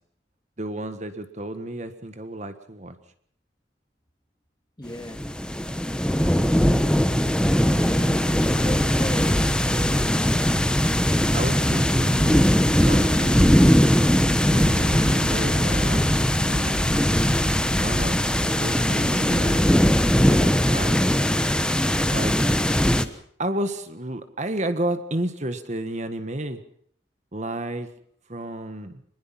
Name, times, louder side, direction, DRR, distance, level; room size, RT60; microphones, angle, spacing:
voice 1, 0.6-3.0 11.3-13.7 14.5-16.9 17.8-19.7 20.3-21.1 22.1-22.4 23.4-26.6 27.3-27.9 28.3-29.0, right 1 dB, 40° right, 9 dB, 1.6 m, -31 dB
voice 2, 4.8-5.2 7.6-10.3, left 1 dB, 20° left, 6 dB, 2.5 m, -36 dB
sound 1, 5.0-23.0, equal, 5° left, 1.1 m, -20 dB
26.0 x 21.0 x 5.8 m, 0.62 s
head